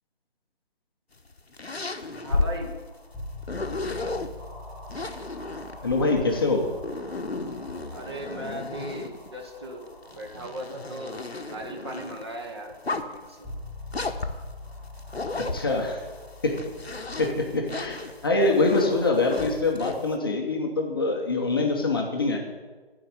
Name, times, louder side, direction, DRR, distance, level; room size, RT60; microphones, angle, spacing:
sound 1, 1.2-4.3 4.9-9.3 9.9-12.2 12.7-13.3 13.9-16.1 16.5-20.1, left 3 dB, 85° left, 0.9 m, -33 dB
sound 2, 2.1-19.5, left 2 dB, 5° right, 3.1 m, -45 dB
voice 1, 2.2-2.7 7.9-9.9 10.1-13.4, right 1 dB, 25° right, 2 dB, 0.9 m, -37 dB
voice 2, 5.8-6.7 15.3-16.0 16.4-16.6 17.2-22.4, left 3 dB, 25° left, 0 dB, 0.7 m, -24 dB
12.0 x 4.8 x 6.6 m, 1.3 s
figure-of-eight pair, 150°, 31 cm